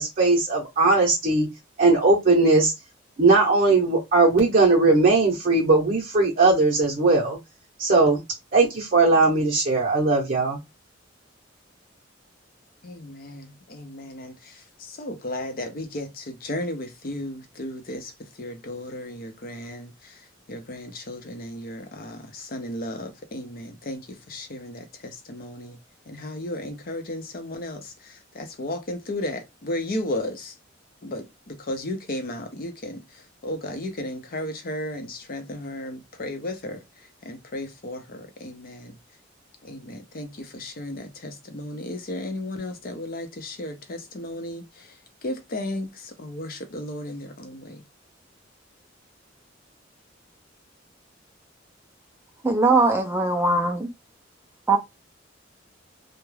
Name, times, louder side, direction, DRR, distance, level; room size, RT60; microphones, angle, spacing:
voice 1, 0.0-1.5 1.8-2.7 3.2-7.4 7.8-8.2 8.5-10.6, right 3 dB, 45° right, 0.7 m, -19 dB
voice 2, 12.8-25.8 26.1-30.6 31.0-39.0 39.6-47.8, left 1 dB, 50° left, 0.6 m, -34 dB
voice 3, 52.4-53.9 54.7-54.8, right 3 dB, 10° right, 0.3 m, -20 dB
2.3 x 2.1 x 3.1 m
head